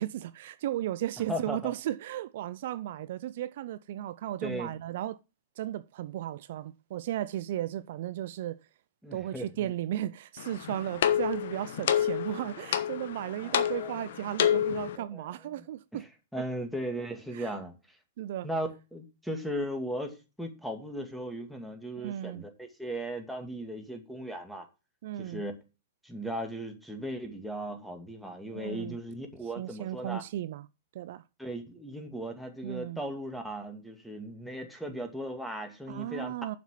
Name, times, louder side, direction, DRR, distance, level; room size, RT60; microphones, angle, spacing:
voice 1, 0.0-5.2 5.6-8.6 9.1-16.0 17.3-17.5 18.2-18.5 22.0-22.4 25.0-25.4 28.5-29.0 29.6-30.7 30.9-31.2 32.6-33.0 35.9-36.6, right 13 dB, 60° right, 0.5 m, -35 dB
voice 2, 1.3-1.7 4.4-4.7 9.0-9.7 13.4-14.2 15.0-15.6 15.9-16.1 16.3-17.7 18.4-24.7 25.2-25.5 26.0-30.2 31.4-36.4, equal, ahead, 2.2 m, -37 dB
sound 1, 10.4-15.0, left 10 dB, 65° left, 1.1 m, -29 dB
7.2 x 6.0 x 7.4 m
hypercardioid pair, 115°, 0 cm